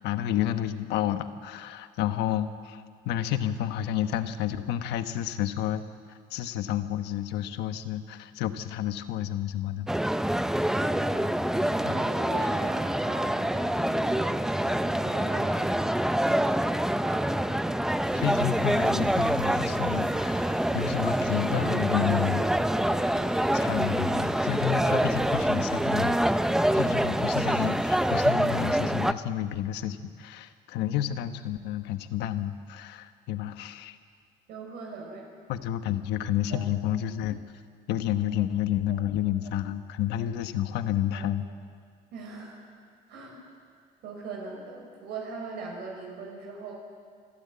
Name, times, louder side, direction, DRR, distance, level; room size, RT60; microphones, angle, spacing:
voice 1, 0.0-5.8 6.3-9.9 11.8-12.0 18.1-22.4 23.5-34.0 35.5-37.4 37.9-41.4, left 11 dB, 90° left, 9 dB, 1.2 m, -30 dB
sound 1, 9.9-29.1, right 1 dB, 5° right, 0.6 m, -26 dB
voice 2, 10.6-15.8 16.1-17.5 34.5-35.3 36.5-36.6 39.4-39.5 40.2-40.3 41.1-41.2 42.1-42.6 43.1-43.6 44.0-46.7, right 4 dB, 80° right, -1 dB, 5.2 m, -41 dB
sound 2, 18.0-28.3, right 5 dB, 50° right, 2.3 m, -42 dB
27.5 x 12.5 x 8.7 m, 2.1 s
cardioid pair, 110°, 17 cm